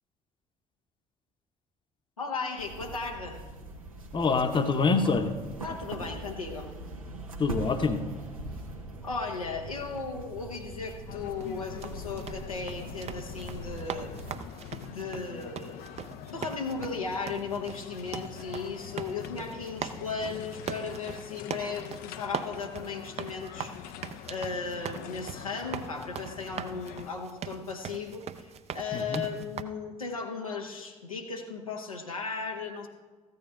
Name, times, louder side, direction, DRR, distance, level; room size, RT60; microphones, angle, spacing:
voice 1, 2.2-3.4 5.6-6.7 9.0-14.1 14.9-16.0 16.3-23.9 24.3-32.9, left 4 dB, 90° left, 0 dB, 0.9 m, -36 dB
Tire Roll, 2.6-14.3, right 2 dB, 90° right, 0.9 m, -42 dB
voice 2, 4.1-5.4 7.4-8.0 28.9-29.2, left 4 dB, 30° left, 8 dB, 0.9 m, -25 dB
sound 1, 11.1-27.1, left 10 dB, 55° left, 0.5 m, -44 dB
sound 2, 11.4-29.6, right 8 dB, 35° right, 0.6 m, -41 dB
14.0 x 9.2 x 3.6 m, 1.3 s
figure-of-eight pair, 50°, 17 cm